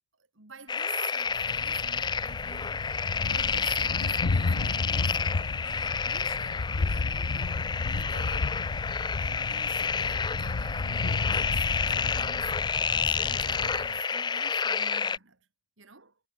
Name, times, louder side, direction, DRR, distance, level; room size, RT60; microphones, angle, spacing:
voice 1, 0.3-5.2 5.6-8.6 9.2-15.5 15.8-16.2, right 5 dB, 75° right, 2.8 m, -49 dB
sound 1, 0.7-15.2, left 6 dB, 20° left, 0.4 m, -30 dB
Thunder, 1.3-14.0, left 3 dB, 90° left, 0.8 m, -33 dB
head